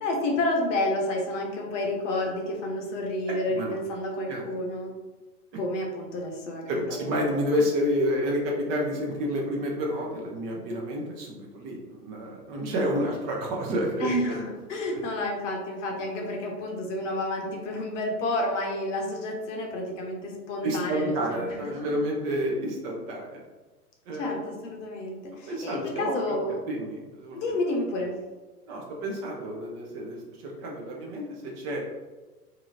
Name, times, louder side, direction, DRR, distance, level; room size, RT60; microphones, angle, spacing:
voice 1, 0.0-4.9 5.5-7.4 14.0-21.9 24.1-26.6 27.3-28.1, left 1 dB, 50° left, 1 dB, 0.8 m, -30 dB
voice 2, 6.7-14.3 14.9-15.0 20.6-23.4 24.1-24.3 25.5-26.2 26.7-27.4 28.7-31.8, equal, 30° right, -1 dB, 0.6 m, -29 dB
2.8 x 2.6 x 2.6 m, 1.2 s
figure-of-eight pair, 105°, 47 cm